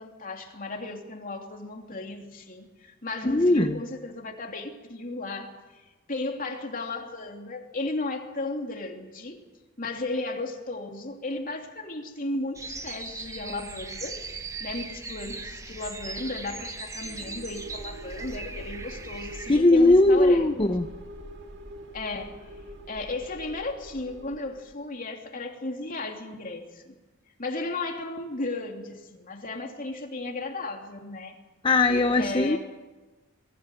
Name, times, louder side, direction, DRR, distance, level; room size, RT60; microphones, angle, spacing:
voice 1, 0.0-9.4 9.8-14.2 14.6-20.5 21.9-22.5 22.9-26.9 27.4-31.3 32.2-32.6, left 2 dB, 40° left, 2 dB, 3.0 m, -35 dB
voice 2, 3.2-3.8 19.5-20.9 31.6-32.6, left 2 dB, 25° left, 7 dB, 0.8 m, -19 dB
sound 1, 12.5-19.6, right 3 dB, 15° right, 1.2 m, -39 dB
sound 2, 17.0-24.8, right 1 dB, 55° right, 2.2 m, -43 dB
23.5 x 16.0 x 9.2 m, 1.2 s
head